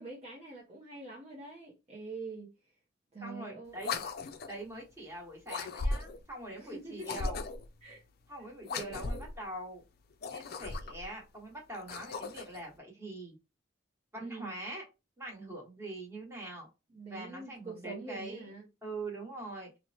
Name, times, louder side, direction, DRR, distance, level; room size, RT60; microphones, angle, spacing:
voice 1, 0.0-2.5 3.1-4.0 6.6-7.1 7.8-8.0 8.7-9.2 14.2-14.5 16.9-18.7, right 3 dB, 35° right, 0.7 m, -45 dB
voice 2, 3.2-3.9 4.5-7.4 8.3-9.8 10.3-13.4 14.1-14.9 15.2-16.7 17.1-18.5 18.8-19.7, right 1 dB, 15° right, 1.2 m, -43 dB
sound 1, 3.8-4.6 5.5-6.3 7.0-7.7 8.6-9.4 10.1-11.1 11.7-12.6, left 3 dB, 55° left, 0.4 m, -37 dB
4.2 x 2.1 x 2.7 m
head